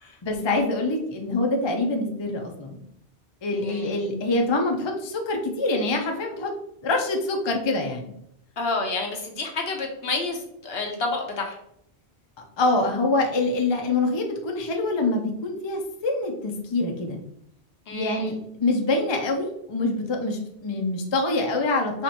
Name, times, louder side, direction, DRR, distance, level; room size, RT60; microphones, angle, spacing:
voice 1, 0.2-2.8 3.4-6.5 6.8-8.1 12.6-17.2 17.9-22.0, left 2 dB, 30° left, 2 dB, 0.5 m, -25 dB
voice 2, 3.5-4.0 8.6-11.6 17.9-18.3, left 3 dB, 65° left, 2 dB, 1.1 m, -30 dB
5.0 x 3.1 x 2.9 m, 0.73 s
omnidirectional pair, 1.1 m